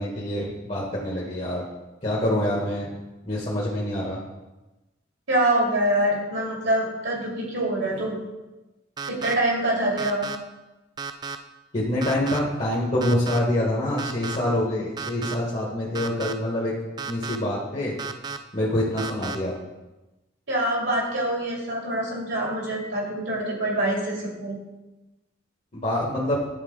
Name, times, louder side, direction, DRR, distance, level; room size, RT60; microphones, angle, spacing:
voice 1, 0.0-1.6 2.0-2.9 3.3-4.2 11.7-16.7 17.1-17.9 18.5-19.6 25.7-26.4, left 1 dB, 35° left, -5 dB, 1.4 m, -26 dB
voice 2, 5.3-8.2 9.0-10.3 20.5-24.6, right 1 dB, 70° right, -3 dB, 2.4 m, -25 dB
sound 1, 9.0-9.3 10.0-10.4 11.0-11.4 12.0-12.4 13.0-13.4 14.0-14.4 15.0-15.3 15.9-16.3 17.0-17.4 18.0-18.4 19.0-19.4, right 5 dB, 20° right, 0.3 m, -33 dB
11.0 x 4.4 x 3.7 m, 1.1 s
head